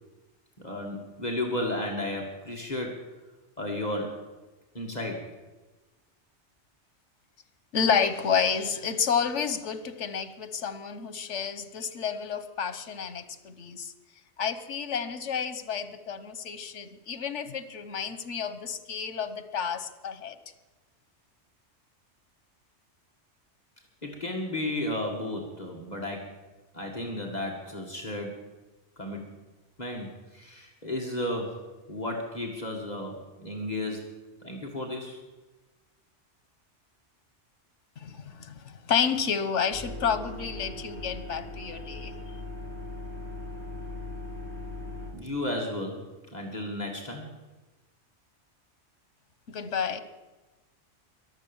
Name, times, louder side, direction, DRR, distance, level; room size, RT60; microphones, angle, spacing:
voice 1, 0.6-3.0 3.6-4.3 4.7-5.3 24.0-26.3 26.7-28.4 29.0-29.3 29.8-35.2 45.1-47.3, left 1 dB, 35° left, 0 dB, 2.1 m, -33 dB
voice 2, 7.7-13.9 14.4-20.4 38.0-42.1 49.5-50.0, left 6 dB, 85° left, 13 dB, 1.4 m, -30 dB
sound 1, 39.7-45.1, left 2 dB, 15° left, 3.9 m, -39 dB
22.0 x 7.7 x 7.2 m, 1.1 s
omnidirectional pair, 1.2 m